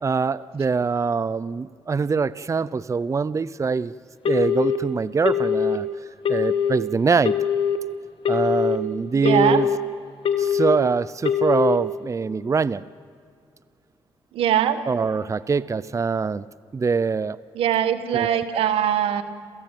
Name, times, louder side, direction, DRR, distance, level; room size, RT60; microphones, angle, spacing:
voice 1, 0.0-3.9 4.3-5.9 6.3-7.4 8.3-9.7 10.4-12.8 14.9-16.5 16.7-17.4 18.1-18.4, right 5 dB, 35° right, 19 dB, 0.6 m, -23 dB
Telephone, 4.3-4.8 5.3-5.8 6.3-6.8 7.3-7.8 8.3-8.8 9.3-9.8 10.3-10.8 11.3-11.8, left 8 dB, 70° left, 2.3 m, -22 dB
voice 2, 9.1-9.6 14.3-14.8 17.5-19.2, right 10 dB, 90° right, 12 dB, 1.4 m, -21 dB
28.0 x 15.0 x 9.1 m, 2.2 s
cardioid pair, 60°, 9 cm